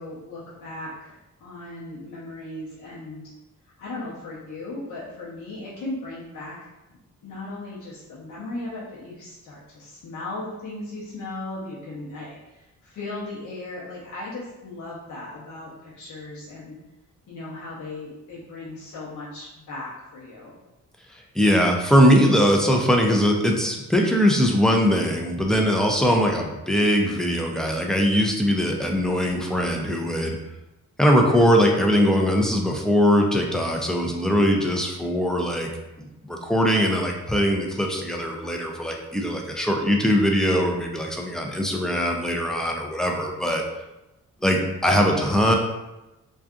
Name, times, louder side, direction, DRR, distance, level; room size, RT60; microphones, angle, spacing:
voice 1, 0.0-3.3 3.8-6.6 7.2-16.8 17.3-20.5, left 2 dB, 70° left, -7 dB, 0.8 m, -37 dB
voice 2, 21.4-30.4 31.0-35.7 36.0-43.6 44.4-45.5, equal, ahead, 0 dB, 0.4 m, -21 dB
2.6 x 2.3 x 2.4 m, 0.98 s
cardioid pair, 80°, 31 cm